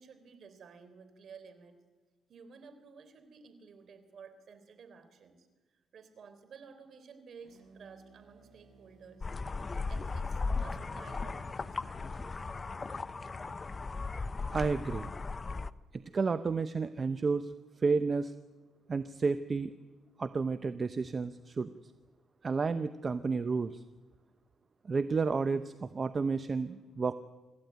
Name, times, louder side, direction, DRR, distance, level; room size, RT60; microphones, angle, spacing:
voice 1, 0.0-1.8 2.3-9.3 9.9-12.5, right 5 dB, 55° right, 10 dB, 3.5 m, -54 dB
sound 1, 7.4-13.6, right 4 dB, 80° right, 7.2 m, -59 dB
sound 2, 9.2-15.7, left 4 dB, 30° left, 0.7 m, -37 dB
voice 2, 14.5-15.1 15.9-17.5 17.8-18.3 18.9-19.7 20.2-21.7 22.4-23.8 24.9-27.1, right 4 dB, 35° right, 12 dB, 0.8 m, -31 dB
25.5 x 14.0 x 9.3 m, 1.3 s
cardioid pair, 90°, 0 cm